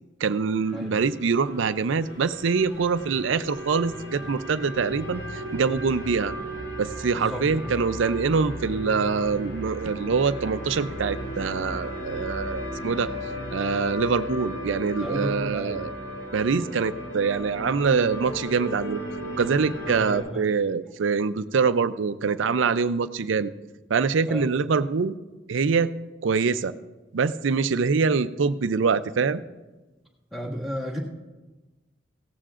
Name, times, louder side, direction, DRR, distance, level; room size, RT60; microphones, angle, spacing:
voice 1, 0.2-6.3 6.8-13.1 13.5-15.9 16.3-19.0 19.4-23.5 23.9-25.1 25.5-25.9 26.2-26.7 27.1-29.4, right 5 dB, 75° right, 13 dB, 0.5 m, -24 dB
sound 1, 0.6-20.2, equal, 70° left, 3.6 m, -35 dB
voice 2, 7.0-7.9 15.0-15.8 19.8-20.5 24.3-24.5 30.3-31.0, equal, ahead, -5 dB, 1.8 m, -33 dB
17.0 x 14.0 x 2.5 m, 1.2 s
head